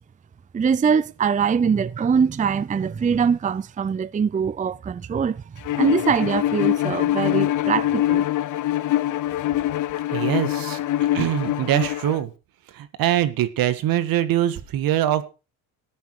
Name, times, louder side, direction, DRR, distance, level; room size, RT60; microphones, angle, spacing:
voice 1, 0.5-5.4 5.8-8.3, right 6 dB, 20° right, 0.5 m, -22 dB
Bowed string instrument, 5.6-12.2, left 13 dB, 60° left, 0.7 m, -24 dB
voice 2, 10.1-10.8 11.1-12.3 12.7-15.2, right 12 dB, 75° right, 1.7 m, -23 dB
14.5 x 9.5 x 4.8 m
cardioid pair, 95°, 35 cm